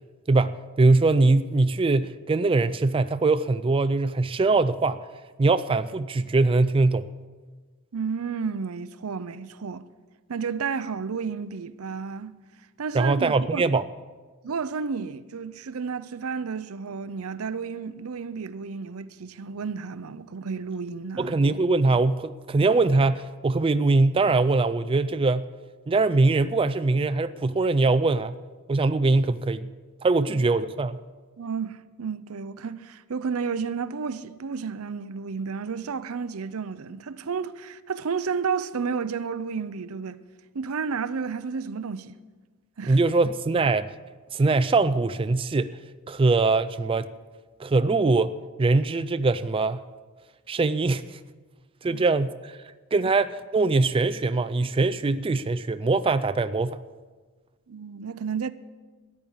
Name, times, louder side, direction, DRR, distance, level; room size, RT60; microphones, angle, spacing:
voice 1, 0.3-5.0 5.4-7.1 12.9-13.8 21.2-25.5 25.9-28.4 28.7-29.7 30.0-31.0 42.9-43.9 44.3-45.8 46.1-47.1 47.6-48.3 48.6-49.8 50.5-51.2 51.8-52.6 52.9-56.8, right 3 dB, 25° right, 0.4 m, -22 dB
voice 2, 7.9-9.9 10.3-12.3 12.8-13.8 14.4-21.4 30.2-30.3 31.4-40.2 40.5-42.2 42.8-43.0 51.8-52.0 57.7-58.5, right 5 dB, 80° right, 0.6 m, -32 dB
14.0 x 9.8 x 7.2 m
head